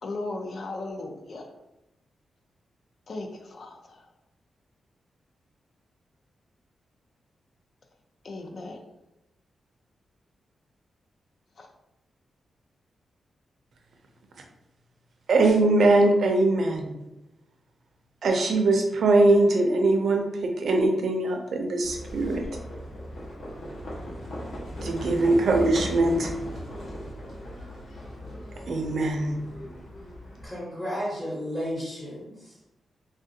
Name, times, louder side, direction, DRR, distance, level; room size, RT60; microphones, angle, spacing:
voice 1, 0.0-1.5 3.1-4.1 8.2-8.8 11.6-11.7, left 2 dB, 50° left, 3 dB, 0.4 m, -36 dB
voice 2, 15.3-16.9 18.2-22.4 24.8-26.3 28.7-29.4, right 2 dB, 60° right, 3 dB, 0.5 m, -22 dB
Livestock farm animals working animals, 21.8-30.5, equal, 65° left, 1.1 m, -38 dB
voice 3, 30.4-32.5, equal, 25° left, -9 dB, 1.1 m, -33 dB
3.3 x 2.4 x 2.7 m, 0.91 s
wide cardioid pair, 160°, 0 cm